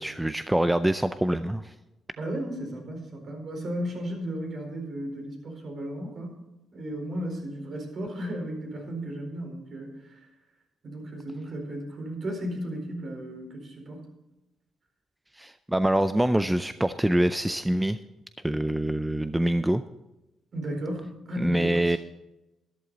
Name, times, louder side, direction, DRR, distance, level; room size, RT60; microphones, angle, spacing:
voice 1, 0.0-1.7 15.4-18.0 18.4-19.8 21.4-22.0, right 1 dB, 10° right, 11 dB, 0.5 m, -25 dB
voice 2, 2.2-6.4 6.7-10.2 10.8-14.0 20.5-22.0, right 1 dB, 50° right, 2 dB, 4.4 m, -35 dB
12.5 x 11.5 x 4.0 m, 0.98 s
cardioid pair, 90°, 0 cm